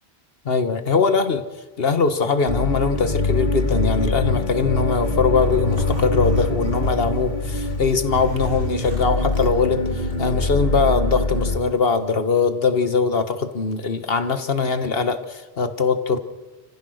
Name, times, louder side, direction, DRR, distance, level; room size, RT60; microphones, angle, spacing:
voice 1, 0.5-1.4 1.8-16.2, left 4 dB, 65° left, 10 dB, 1.6 m, -21 dB
sound 1, 2.5-11.6, left 3 dB, 50° left, 1.8 m, -24 dB
Zipper (clothing), 3.6-10.9, right 3 dB, 60° right, 5.6 m, -35 dB
30.0 x 15.0 x 6.5 m, 1.2 s
omnidirectional pair, 1.1 m